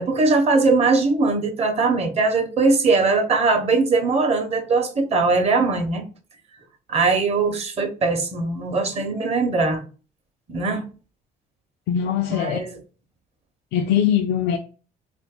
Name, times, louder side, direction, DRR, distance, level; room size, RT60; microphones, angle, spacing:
voice 1, 0.0-6.0 6.9-9.8 10.5-10.9 12.3-12.8, right 3 dB, 40° right, 0.7 m, -20 dB
voice 2, 11.9-12.6 13.7-14.6, left 9 dB, 85° left, 0.4 m, -21 dB
2.6 x 2.5 x 3.6 m
cardioid pair, 110°, 17 cm